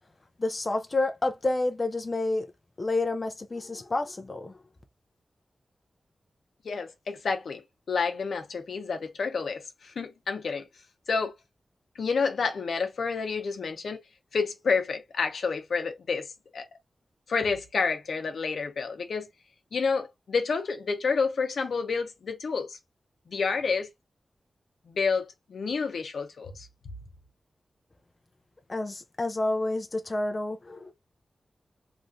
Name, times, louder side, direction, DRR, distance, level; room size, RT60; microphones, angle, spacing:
voice 1, 0.4-2.5 2.8-4.6 28.7-30.9, left 2 dB, 30° left, 0.4 m, -29 dB
voice 2, 6.6-7.6 7.9-10.7 11.1-11.3 11.9-14.0 14.3-16.7 17.3-19.3 19.7-22.8 23.3-23.9 24.9-26.7, left 5 dB, 85° left, 0.7 m, -29 dB
3.0 x 2.5 x 2.5 m
wide cardioid pair, 145°, 0 cm